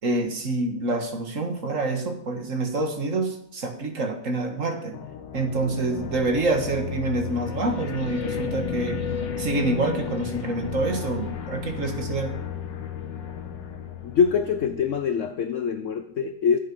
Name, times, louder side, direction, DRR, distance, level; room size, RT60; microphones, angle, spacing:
voice 1, 0.0-5.0 5.3-9.0 9.4-12.4, right 2 dB, 45° right, 4 dB, 2.0 m, -27 dB
sound 1, 4.9-15.1, left 7 dB, 80° left, 1.8 m, -33 dB
voice 2, 14.0-16.6, left 6 dB, 60° left, 9 dB, 0.9 m, -24 dB
15.0 x 7.8 x 5.5 m, 0.71 s
omnidirectional pair, 1.9 m